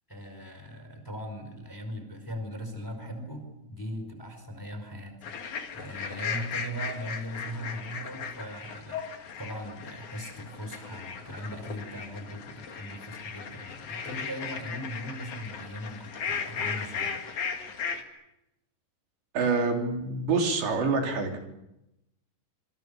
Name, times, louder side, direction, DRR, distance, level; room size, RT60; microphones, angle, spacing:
voice 1, 0.1-5.1 5.4-9.0 9.4-17.2, equal, 5° left, 7 dB, 4.3 m, -39 dB
sound 1, 5.2-18.0, left 6 dB, 50° left, 3.3 m, -37 dB
voice 2, 19.3-21.4, right 4 dB, 75° right, 2 dB, 5.5 m, -26 dB
26.5 x 26.5 x 7.0 m, 0.89 s
omnidirectional pair, 5.1 m